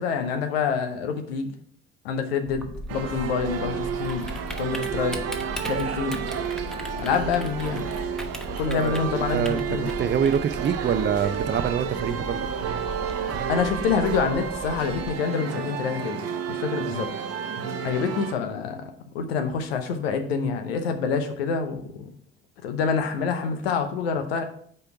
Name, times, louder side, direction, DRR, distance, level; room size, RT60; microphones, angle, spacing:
voice 1, 0.0-1.5 2.0-4.3 4.6-5.2 5.7-6.2 7.0-7.8 8.6-9.8 13.5-16.2 16.5-17.1 17.8-22.1 22.6-24.4, left 6 dB, 80° left, 6 dB, 0.8 m, -27 dB
Typing, 2.5-15.1, equal, ahead, 1.0 m, -37 dB
sound 1, 2.9-18.3, right 7 dB, 55° right, 0.9 m, -31 dB
voice 2, 8.5-12.5, right 8 dB, 35° right, 12 dB, 0.6 m, -26 dB
5.3 x 4.4 x 5.7 m, 0.62 s
hypercardioid pair, 50°, 31 cm